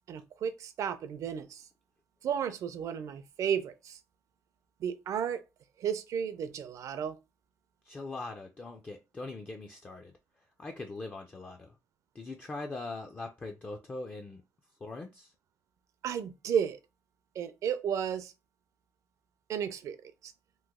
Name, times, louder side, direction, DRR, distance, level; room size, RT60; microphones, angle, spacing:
voice 1, 0.1-1.7 2.2-4.0 4.8-5.4 5.8-7.2 16.0-16.8 17.3-18.3 19.5-20.0 20.2-20.3, right 8 dB, 65° right, 0.5 m, -33 dB
voice 2, 7.9-10.1 10.6-11.8 12.1-14.4 14.8-15.3, left 3 dB, 25° left, 0.4 m, -41 dB
3.0 x 2.1 x 3.5 m
cardioid pair, 115°, 6 cm